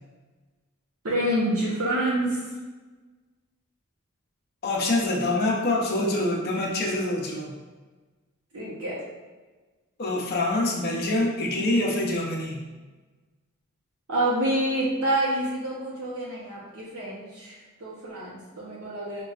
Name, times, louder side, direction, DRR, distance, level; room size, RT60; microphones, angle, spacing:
voice 1, 1.0-2.5 8.5-9.0 14.1-19.2, right 1 dB, 80° right, -6 dB, 0.8 m, -27 dB
voice 2, 4.6-7.5 10.0-12.6, left 2 dB, 45° left, -2 dB, 0.6 m, -25 dB
5.2 x 2.3 x 2.3 m, 1.3 s
head